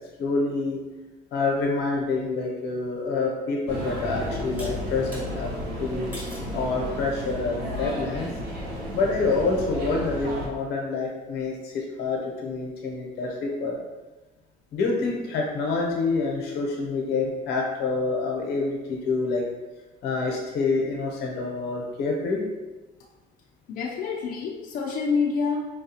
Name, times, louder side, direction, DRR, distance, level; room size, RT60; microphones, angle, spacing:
voice 1, 0.2-0.8 1.3-5.5 5.8-6.1 6.5-8.3 8.9-13.8 14.7-19.5 20.0-22.4, left 3 dB, 80° left, 0 dB, 0.8 m, -27 dB
sound 1, 3.7-10.5, equal, 85° right, 0.9 m, -33 dB
sound 2, 4.6-5.3 6.1-6.5 7.2-7.6, equal, 10° right, 1.1 m, -42 dB
voice 2, 23.7-25.7, left 5 dB, 55° left, -2 dB, 0.5 m, -27 dB
4.7 x 2.3 x 2.8 m, 1.1 s
cardioid pair, 110°, 17 cm